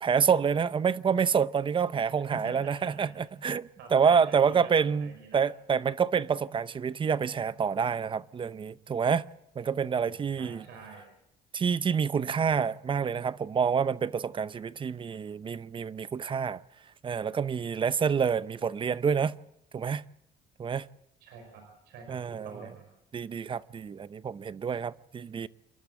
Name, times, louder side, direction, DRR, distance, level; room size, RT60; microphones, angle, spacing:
voice 1, 0.0-9.3 9.6-10.6 11.5-16.6 17.0-19.4 19.7-20.0 20.6-20.9 22.1-22.7 23.1-25.5, right 6 dB, 30° right, 0.6 m, -28 dB
voice 2, 2.3-3.2 3.8-5.4 10.2-11.0 21.2-22.9, right 4 dB, 85° right, 5.2 m, -47 dB
28.5 x 12.0 x 8.1 m
cardioid pair, 110°, 17 cm